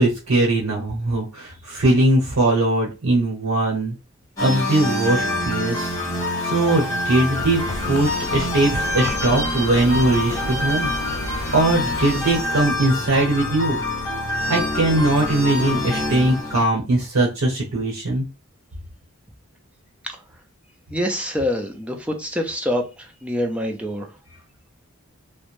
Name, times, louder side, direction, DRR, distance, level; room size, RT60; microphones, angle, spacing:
voice 1, 0.0-3.9 4.4-6.0 6.4-10.9 11.5-13.8 14.5-18.3, right 2 dB, 75° right, 0.9 m, -20 dB
sound 1, 4.4-16.7, left 1 dB, 15° left, 0.9 m, -26 dB
sound 2, 7.4-12.4, left 2 dB, 65° left, 0.4 m, -32 dB
voice 2, 20.9-24.1, equal, 5° right, 0.3 m, -26 dB
2.5 x 2.1 x 3.0 m
head